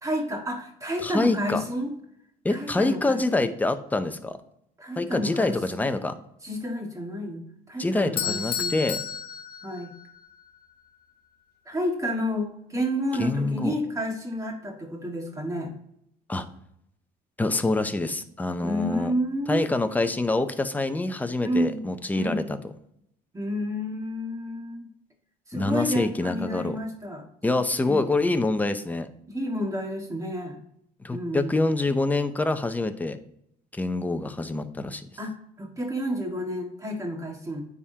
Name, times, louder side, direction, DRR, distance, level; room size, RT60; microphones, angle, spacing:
voice 1, 0.0-1.9 2.5-3.2 4.8-5.9 6.4-8.8 9.6-9.9 11.7-15.7 18.6-19.6 21.4-21.8 22.1-22.5 23.3-24.9 25.5-27.3 27.9-28.0 29.3-30.6 31.1-31.5 35.2-37.6, equal, 20° right, 1 dB, 1.7 m, -30 dB
voice 2, 1.0-1.6 2.4-4.4 5.0-6.1 7.8-9.0 13.2-13.7 16.3-16.5 17.4-19.1 19.5-22.6 25.5-26.8 27.4-29.1 31.0-33.2 33.7-35.1, left 2 dB, 10° left, 9 dB, 0.6 m, -26 dB
Bell / Doorbell, 8.2-10.3, left 8 dB, 65° left, 0.7 m, -31 dB
9.4 x 3.7 x 2.8 m, 0.74 s
cardioid pair, 110°, 17 cm